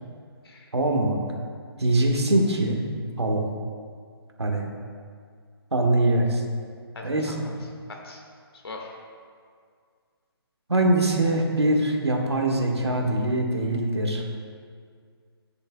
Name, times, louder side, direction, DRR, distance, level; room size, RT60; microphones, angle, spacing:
voice 1, 0.7-1.2 1.8-2.8 3.2-3.4 4.4-4.7 5.7-6.4 7.0-7.4 10.7-14.3, right 1 dB, 90° right, 0 dB, 1.6 m, -23 dB
voice 2, 6.9-7.4 7.9-8.2 8.5-9.0, left 3 dB, 65° left, 1 dB, 1.8 m, -41 dB
12.5 x 9.8 x 2.3 m, 2.1 s
figure-of-eight pair, 145°, 13 cm